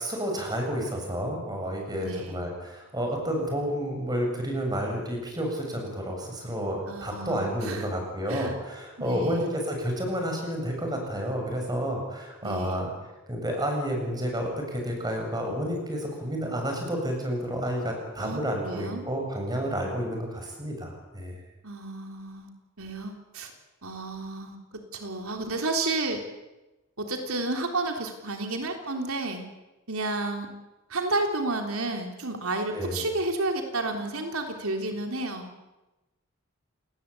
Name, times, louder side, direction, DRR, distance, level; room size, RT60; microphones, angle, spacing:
voice 1, 0.0-12.9 13.3-21.4 32.7-33.0, equal, 20° right, 2 dB, 7.5 m, -30 dB
voice 2, 2.0-2.4 6.9-7.9 8.3-8.6 9.0-9.5 12.4-12.9 18.2-19.0 21.6-23.5 23.8-24.6 24.9-26.2 27.0-29.4 29.9-30.5 30.9-35.6, right 2 dB, 85° right, 4 dB, 3.6 m, -31 dB
29.0 x 20.0 x 8.5 m, 1.1 s
head